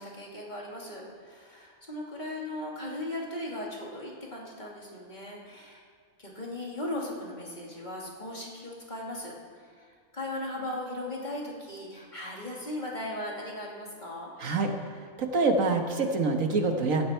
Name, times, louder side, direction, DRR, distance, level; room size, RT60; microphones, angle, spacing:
voice 1, 0.0-5.8 6.2-9.3 9.8-14.3, left 1 dB, 35° left, -3 dB, 3.0 m, -38 dB
voice 2, 14.4-14.7 15.0-17.1, right 3 dB, 70° right, 4 dB, 1.8 m, -26 dB
17.5 x 15.0 x 4.6 m, 2.1 s
omnidirectional pair, 1.4 m